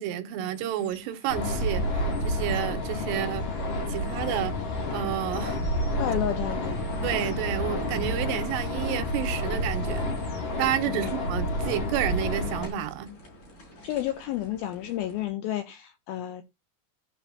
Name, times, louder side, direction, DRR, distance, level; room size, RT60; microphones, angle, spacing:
voice 1, 0.0-3.5 3.9-4.6 4.9-5.6 7.0-10.1 10.6-13.1, right 11 dB, 85° right, 3.0 m, -30 dB
sound 1, 0.5-15.3, equal, 45° left, 6.1 m, -44 dB
sound 2, 1.3-12.7, left 1 dB, 70° left, 1.1 m, -29 dB
voice 2, 6.0-6.8 10.9-11.1 13.8-16.4, left 12 dB, 85° left, 2.2 m, -31 dB
14.5 x 6.6 x 2.8 m
omnidirectional pair, 5.0 m